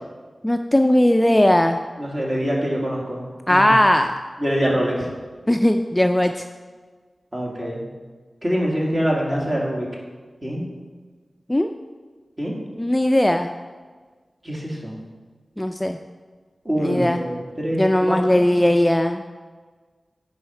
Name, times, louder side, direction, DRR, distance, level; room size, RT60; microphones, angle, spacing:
voice 1, 0.4-1.8 3.5-4.1 5.5-6.4 11.5-11.7 12.8-13.5 15.6-16.0 16.8-17.2 17.7-19.2, left 1 dB, 15° left, 6 dB, 0.3 m, -18 dB
voice 2, 2.0-3.7 4.4-5.1 7.3-7.8 8.4-9.9 10.4-10.7 12.4-12.5 14.4-14.9 16.7-18.5, equal, 30° right, -3 dB, 2.1 m, -24 dB
10.5 x 4.2 x 4.4 m, 1.4 s
wide cardioid pair, 70°, 0 cm